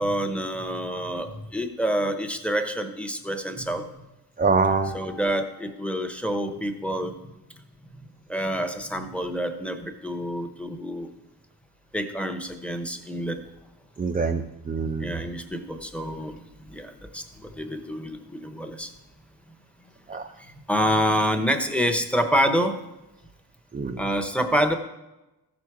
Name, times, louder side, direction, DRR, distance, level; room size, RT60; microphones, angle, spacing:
voice 1, 0.0-3.9 4.6-7.1 8.3-11.1 11.9-13.4 15.0-16.4 16.7-18.9 20.4-22.8 24.0-24.7, equal, 5° left, 7 dB, 0.9 m, -27 dB
voice 2, 4.4-4.9 14.0-15.1 20.1-20.2 23.7-24.0, right 4 dB, 20° right, 5 dB, 0.5 m, -24 dB
14.5 x 6.2 x 4.7 m, 1.0 s
wide cardioid pair, 135°, 41 cm